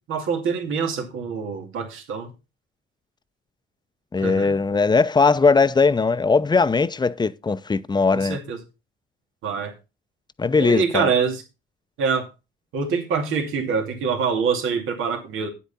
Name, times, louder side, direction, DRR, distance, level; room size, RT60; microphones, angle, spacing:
voice 1, 0.1-2.3 4.2-4.5 8.1-8.6 9.4-9.7 10.6-11.4 12.0-12.3 12.7-15.5, right 5 dB, 85° right, 2.5 m, -25 dB
voice 2, 4.1-8.4 10.4-11.1, left 4 dB, 20° left, 0.6 m, -19 dB
9.4 x 8.4 x 4.1 m
cardioid pair, 90°, 20 cm